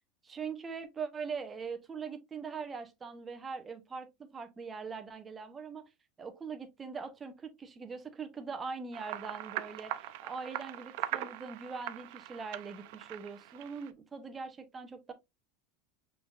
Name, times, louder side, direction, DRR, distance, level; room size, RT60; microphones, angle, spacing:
voice 1, 0.2-5.9 6.2-15.1, right 5 dB, 25° right, 0.9 m, -42 dB
sound 1, 8.9-13.9, right 14 dB, 70° right, 0.4 m, -41 dB
6.0 x 3.4 x 2.4 m
supercardioid pair, 105°, 0 cm